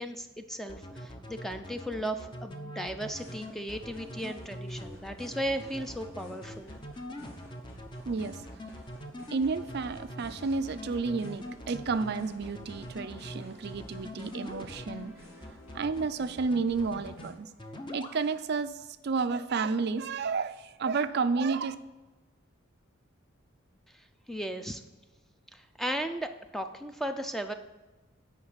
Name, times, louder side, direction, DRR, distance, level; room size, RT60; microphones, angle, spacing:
voice 1, 0.0-6.8 23.9-24.8 25.5-27.5, right 1 dB, ahead, 7 dB, 0.5 m, -36 dB
sound 1, 0.7-15.0 15.4-16.1 16.4-17.3 17.6-18.1, left 1 dB, 25° left, 0.8 m, -43 dB
sound 2, 3.0-17.3, equal, 90° left, 2.3 m, -54 dB
voice 2, 8.1-8.4 9.3-15.1 15.7-17.5 17.9-21.8, right 4 dB, 50° right, 11 dB, 0.4 m, -31 dB
9.6 x 5.2 x 5.6 m, 1.1 s
head